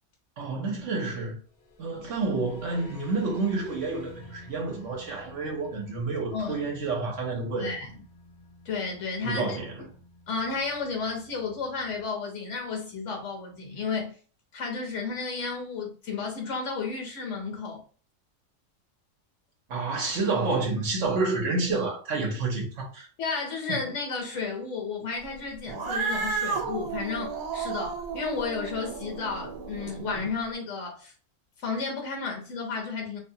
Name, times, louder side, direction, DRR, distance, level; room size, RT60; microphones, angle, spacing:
voice 1, 0.4-1.4 1.8-7.7 9.2-9.8 19.7-23.1 23.7-23.8, right 3 dB, 65° right, 1.1 m, -29 dB
sound 1, 1.3-12.0, left 2 dB, 40° left, 0.8 m, -52 dB
voice 2, 6.3-6.7 7.5-7.9 8.6-9.6 10.3-14.1 14.5-17.8 23.2-31.1 31.6-33.2, left 4 dB, 65° left, 1.1 m, -32 dB
Cat, 25.7-30.3, right 5 dB, 85° right, 1.1 m, -33 dB
2.8 x 2.2 x 2.7 m
omnidirectional pair, 1.4 m